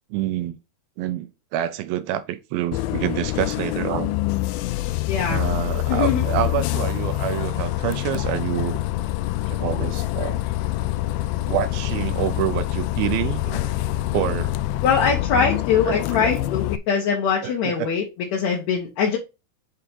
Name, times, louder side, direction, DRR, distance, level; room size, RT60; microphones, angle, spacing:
voice 1, 0.1-0.6 1.0-4.1 5.3-8.8 9.5-10.4 11.5-13.7 14.1-14.5 15.9-16.3 17.4-17.9, right 12 dB, 80° right, 2.4 m, -27 dB
Bus, 2.7-16.8, left 15 dB, 80° left, 2.2 m, -25 dB
voice 2, 5.1-5.4 5.9-6.2 14.8-18.1 18.3-19.2, left 6 dB, 65° left, 2.0 m, -22 dB
8.0 x 4.1 x 4.0 m
omnidirectional pair, 4.4 m